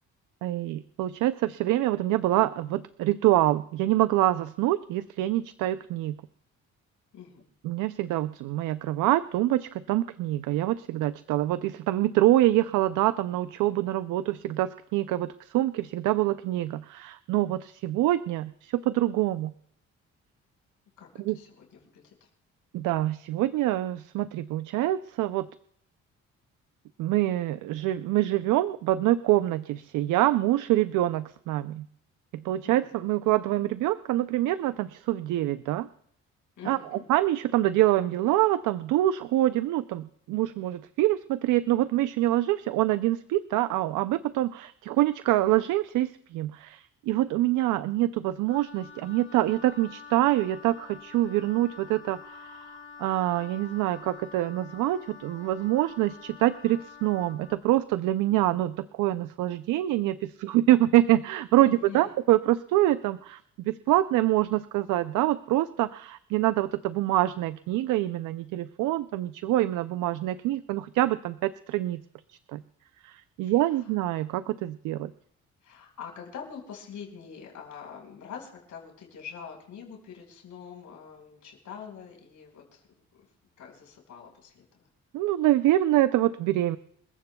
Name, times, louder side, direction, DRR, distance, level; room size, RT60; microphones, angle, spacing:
voice 1, 0.4-6.2 7.6-19.5 21.2-21.4 22.7-25.5 27.0-31.9 32.3-35.9 36.7-52.7 53.0-72.0 72.3-72.6 73.0-75.1 85.1-86.8, right 15 dB, 90° right, 13 dB, 0.5 m, -25 dB
voice 2, 7.1-7.4 21.0-22.3 32.7-32.9 36.6-37.0 61.6-62.1 73.4-73.9 75.6-83.0 83.6-84.9, left 7 dB, 75° left, 0 dB, 5.2 m, -45 dB
Wind instrument woodwind instrument, 48.5-57.6, left 6 dB, 45° left, 1.3 m, -47 dB
27.5 x 15.0 x 2.3 m, 0.67 s
cardioid pair, 90°, 30 cm